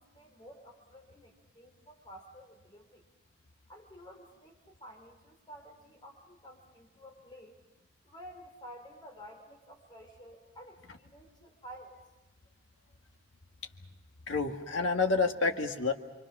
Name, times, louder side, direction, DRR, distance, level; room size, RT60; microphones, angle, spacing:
voice 1, 0.0-3.0 3.7-7.6 8.0-12.0, equal, 20° left, 2 dB, 3.2 m, -52 dB
voice 2, 14.3-15.9, left 3 dB, 70° left, 3 dB, 1.8 m, -28 dB
29.0 x 23.5 x 6.1 m, 1.1 s
head